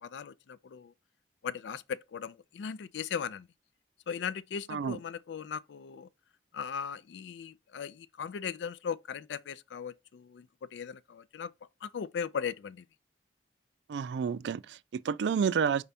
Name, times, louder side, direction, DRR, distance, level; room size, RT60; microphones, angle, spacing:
voice 1, 0.0-0.9 1.4-3.5 4.1-6.1 6.5-11.5 11.8-12.9, left 7 dB, 90° left, 0.4 m, -38 dB
voice 2, 13.9-15.8, right 6 dB, 75° right, 0.3 m, -30 dB
5.0 x 3.4 x 2.7 m
head